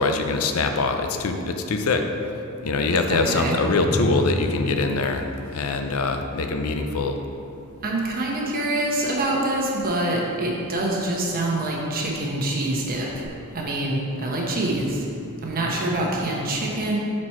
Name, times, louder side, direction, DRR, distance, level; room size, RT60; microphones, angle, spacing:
voice 1, 0.0-2.1 2.6-7.2, left 3 dB, 75° left, 6 dB, 0.5 m, -23 dB
voice 2, 3.1-3.6 7.8-13.2 13.5-15.0 15.4-17.0, right 1 dB, 40° right, -2 dB, 1.0 m, -25 dB
Drum, 3.9-6.2, equal, 60° right, 1.5 m, -30 dB
6.1 x 4.3 x 4.4 m, 2.7 s
head